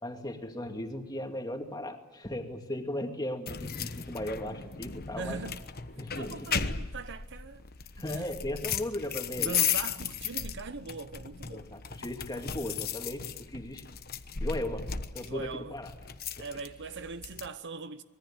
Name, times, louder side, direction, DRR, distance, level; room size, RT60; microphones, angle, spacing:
voice 1, 0.0-5.4 6.0-6.7 8.0-9.6 11.5-13.8 14.4-14.9 15.1-15.9 16.3-16.6, left 1 dB, 20° left, 2.4 m, -37 dB
sound 1, 3.5-17.5, left 7 dB, 45° left, 1.1 m, -36 dB
voice 2, 5.2-5.6 6.1-7.6 8.1-8.3 9.4-11.7 15.2-15.8 16.4-18.0, right 4 dB, 55° right, 0.9 m, -40 dB
25.5 x 21.5 x 8.9 m
head